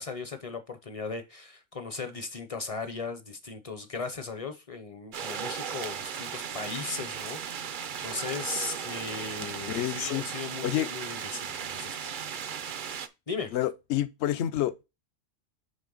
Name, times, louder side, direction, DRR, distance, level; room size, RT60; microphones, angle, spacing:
voice 1, 0.0-12.1 13.3-13.6, left 4 dB, 40° left, 0.6 m, -37 dB
sound 1, 5.1-13.1, right 7 dB, 55° right, 0.6 m, -36 dB
voice 2, 9.7-10.2 10.6-10.9 13.5-14.8, left 13 dB, 65° left, 0.8 m, -28 dB
9.2 x 3.3 x 3.8 m
omnidirectional pair, 1.3 m